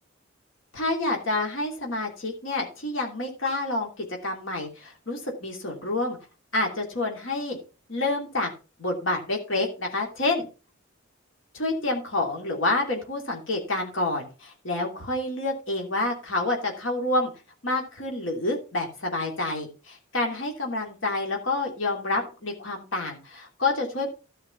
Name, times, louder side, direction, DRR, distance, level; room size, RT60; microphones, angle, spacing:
voice 1, 0.7-6.2 6.5-7.6 7.9-8.5 8.8-10.4 11.6-17.3 17.6-24.1, left 2 dB, 70° left, 1 dB, 2.9 m, -28 dB
13.5 x 5.7 x 5.7 m, 0.33 s
head